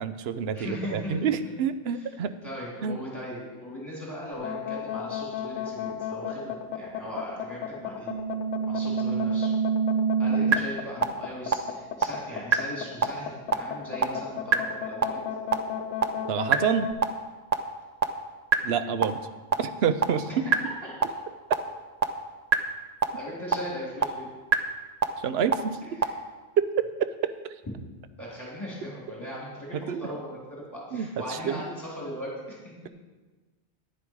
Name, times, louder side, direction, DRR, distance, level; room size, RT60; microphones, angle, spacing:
voice 1, 0.0-2.3 2.8-3.0 16.3-16.9 18.6-19.2 19.6-20.4 25.2-25.8 26.6-27.3 29.7-30.1 30.9-31.6, right 7 dB, 70° right, 12 dB, 0.9 m, -28 dB
voice 2, 0.5-1.4 1.9-2.1 2.4-8.1 8.6-9.5 10.2-15.2 20.3-20.4 20.8-20.9 23.1-24.3 26.0-26.2 28.2-32.6 32.8-32.9, equal, 15° left, -6 dB, 3.4 m, -38 dB
sound 1, 4.3-16.9, left 9 dB, 85° left, 1.1 m, -33 dB
sound 2, 8.1-10.5 11.0-11.1 11.5-11.6 12.0-12.1 12.5-12.6 13.0-13.1 13.5-13.6 14.0-14.1 14.5-14.6 15.0-15.1 15.5-15.6 16.0-16.1 16.5-16.6 17.0-17.1 17.5-17.6 18.0-18.1 18.5-18.6 19.0-19.1 19.5-19.6 20.0-20.1 20.5-20.6 21.0-21.1 21.5-21.6 22.0-22.1 22.5-22.6 23.0-23.1 23.5-23.6 24.0-24.1 24.5-24.6 25.0-25.1 25.5-25.6 26.0-26.1, right 7 dB, 45° right, 0.6 m, -22 dB
11.0 x 10.0 x 4.7 m, 1.3 s
omnidirectional pair, 1.2 m